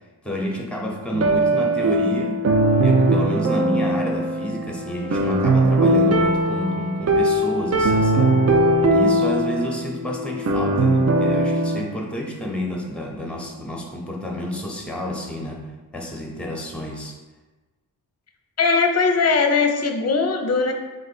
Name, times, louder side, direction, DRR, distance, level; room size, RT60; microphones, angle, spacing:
voice 1, 0.2-2.4 2.8-8.5 8.9-15.7 15.9-17.2, left 1 dB, 5° left, -1 dB, 0.9 m, -29 dB
sound 1, 1.1-11.8, right 1 dB, 40° right, 0.5 m, -20 dB
voice 2, 18.6-20.7, left 4 dB, 40° left, 4 dB, 0.6 m, -19 dB
3.9 x 2.5 x 4.2 m, 1.2 s
cardioid pair, 65°, 38 cm